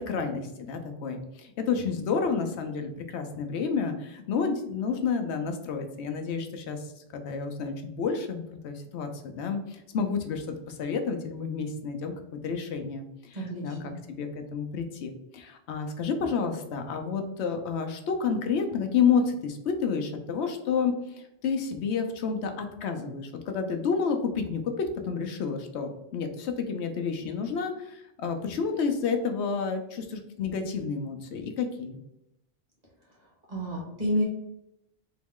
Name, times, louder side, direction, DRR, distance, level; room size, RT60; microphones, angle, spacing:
voice 1, 0.0-13.8 14.1-20.9 21.4-32.0, left 5 dB, 90° left, 6 dB, 0.9 m, -30 dB
voice 2, 13.3-13.9 33.5-34.2, equal, 40° right, -4 dB, 1.5 m, -30 dB
3.9 x 3.0 x 3.6 m, 0.84 s
omnidirectional pair, 1.1 m